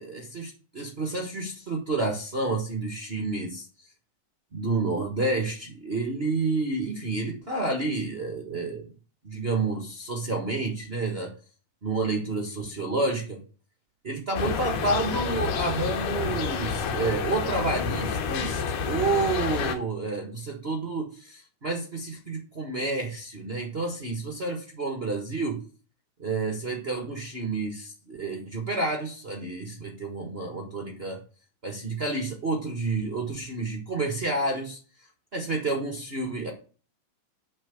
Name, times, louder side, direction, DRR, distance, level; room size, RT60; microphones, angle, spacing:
voice 1, 0.0-3.7 4.5-8.9 9.2-11.3 11.8-13.4 14.0-25.6 26.2-31.2 31.6-34.8 35.3-36.5, right 3 dB, 65° right, 2 dB, 0.6 m, -29 dB
sound 1, 14.3-19.7, left 6 dB, 85° left, 3.0 m, -29 dB
7.5 x 5.7 x 7.0 m, 0.38 s
omnidirectional pair, 3.8 m